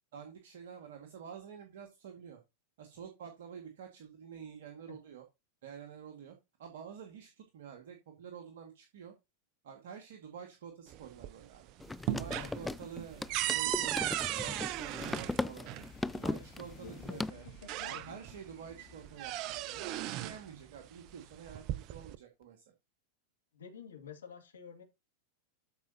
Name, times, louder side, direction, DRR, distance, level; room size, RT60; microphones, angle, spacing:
voice 1, 0.1-2.4 2.8-5.2 5.6-9.1 9.6-11.7 12.1-15.8 16.1-17.5 17.8-22.7, right 7 dB, 55° right, 1.9 m, -49 dB
sound 1, 10.9-11.6 11.9-15.9 17.0-17.1 17.5-18.4 18.8-20.4 21.4-22.2, right 15 dB, 40° right, 0.6 m, -36 dB
sound 2, 11.8-17.3, left 2 dB, 5° left, 0.4 m, -38 dB
sound 3, 11.9-22.2 22.4-22.5, left 8 dB, 40° left, 1.7 m, -60 dB
voice 2, 16.8-17.4 17.8-18.2 23.5-24.8, left 7 dB, 65° left, 2.5 m, -50 dB
13.0 x 5.2 x 2.9 m
figure-of-eight pair, 90°, 0 cm